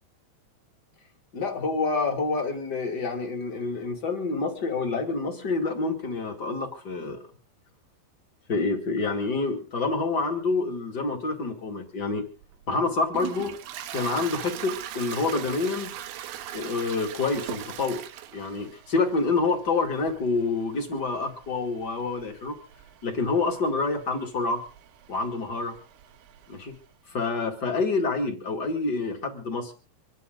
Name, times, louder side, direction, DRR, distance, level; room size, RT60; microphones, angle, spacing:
voice 1, 1.3-7.2 8.5-12.2 12.7-13.6 13.9-15.9 16.5-18.0 18.3-22.6 23.0-24.6 25.1-25.8 26.5-26.8 27.1-29.7, left 3 dB, 35° left, 2 dB, 1.9 m, -27 dB
Toilet flush, 12.4-26.8, right 12 dB, 85° right, 3.3 m, -41 dB
26.0 x 11.5 x 3.8 m, 0.34 s
omnidirectional pair, 5.1 m